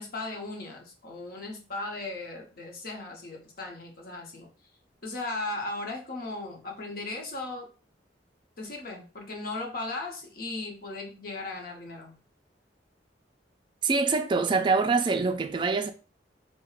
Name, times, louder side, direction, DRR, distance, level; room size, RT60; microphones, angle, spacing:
voice 1, 0.0-4.5 5.0-7.7 8.6-12.2, left 2 dB, 55° left, 0.8 m, -37 dB
voice 2, 13.8-15.9, right 4 dB, 25° right, 0.3 m, -25 dB
4.6 x 2.1 x 2.3 m
head